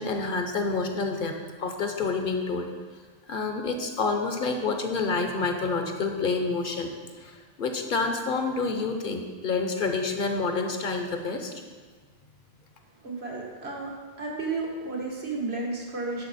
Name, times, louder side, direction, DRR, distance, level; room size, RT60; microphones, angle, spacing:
voice 1, 0.0-2.7 3.3-6.9 7.2-11.5, left 4 dB, 60° left, 4 dB, 1.0 m, -28 dB
voice 2, 13.0-13.9 14.2-16.3, right 3 dB, 90° right, -3 dB, 1.9 m, -32 dB
11.0 x 5.0 x 4.2 m, 1.5 s
omnidirectional pair, 1.0 m